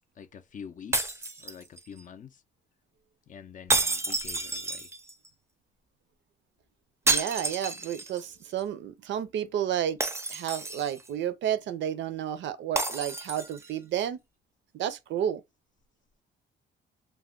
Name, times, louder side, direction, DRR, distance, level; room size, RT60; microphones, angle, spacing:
voice 1, 0.2-2.4 3.3-4.9, left 7 dB, 40° left, 0.4 m, -46 dB
sound 1, 0.9-2.0 3.7-5.3 7.1-8.3 8.6-8.7 10.0-11.1 12.8-13.7, right 2 dB, 15° right, 0.5 m, -30 dB
voice 2, 7.1-10.0 10.3-14.2 14.7-15.4, right 10 dB, 70° right, 0.5 m, -31 dB
2.3 x 2.1 x 3.6 m
cardioid pair, 90°, 20 cm